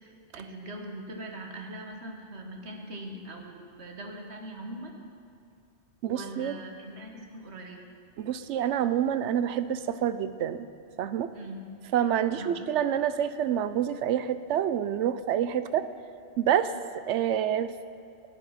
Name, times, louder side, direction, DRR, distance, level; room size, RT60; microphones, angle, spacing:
voice 1, 0.0-4.9 6.0-7.8 11.3-11.6 12.3-12.6, right 1 dB, 70° right, 2 dB, 1.7 m, -41 dB
voice 2, 6.0-6.6 8.2-10.7 11.0-11.3 11.9-15.9 16.4-16.7 17.1-17.7, right 10 dB, 90° right, 12 dB, 0.9 m, -27 dB
15.0 x 9.1 x 5.7 m, 2.5 s
omnidirectional pair, 1.2 m